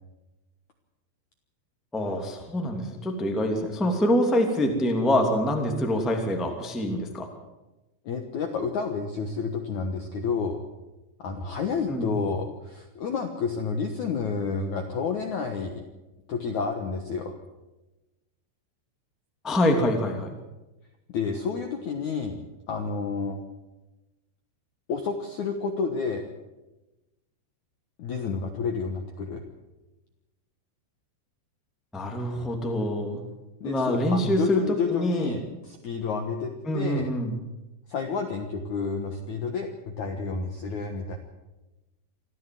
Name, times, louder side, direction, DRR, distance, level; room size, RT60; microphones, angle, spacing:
voice 1, 1.9-7.3 11.9-12.1 19.4-20.3 31.9-33.2 33.6-35.4 36.6-37.3, left 1 dB, ahead, 3 dB, 1.4 m, -25 dB
voice 2, 8.0-10.6 11.2-15.8 16.3-17.4 21.1-22.4 22.7-23.4 24.9-26.3 28.0-29.4 33.6-37.1 37.9-41.2, left 5 dB, 65° left, 4 dB, 2.0 m, -30 dB
25.5 x 14.5 x 7.8 m, 1.0 s
omnidirectional pair, 5.3 m